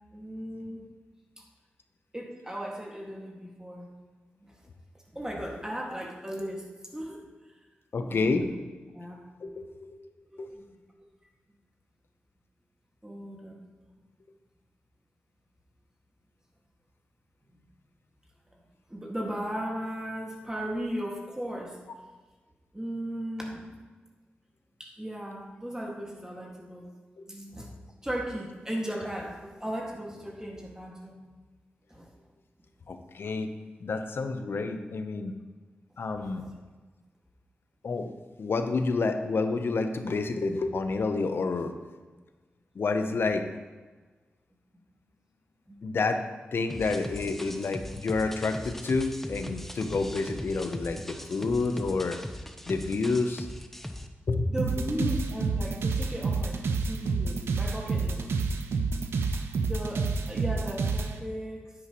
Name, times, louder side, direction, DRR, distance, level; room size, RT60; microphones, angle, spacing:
voice 1, 0.1-0.9 1.4-1.5 2.1-3.9 4.4-4.6 5.1-6.6 6.9-7.2 8.1-8.6 8.9-9.2 10.2-10.8 13.0-13.6 18.9-21.8 22.7-23.6 24.8-26.9 27.3-31.2 31.9-32.1 36.2-36.5 45.7-45.8 49.6-49.7 54.5-56.6 56.9-58.2 59.7-61.7, right 1 dB, 15° right, -1 dB, 2.0 m, -36 dB
voice 2, 7.9-8.5 9.4-10.0 10.4-10.6 27.2-27.3 32.9-33.5 33.8-35.4 36.0-36.5 37.8-38.1 38.4-41.7 42.8-43.5 45.8-46.2 46.5-52.2 52.7-53.5 54.3-54.5 55.0-55.1, left 3 dB, 65° left, 7 dB, 0.8 m, -29 dB
sound 1, 46.7-54.1, equal, 5° left, 0.9 m, -40 dB
sound 2, 54.6-61.1, right 4 dB, 80° right, 0.7 m, -28 dB
9.8 x 9.0 x 3.1 m, 1.3 s
cardioid pair, 45°, 4 cm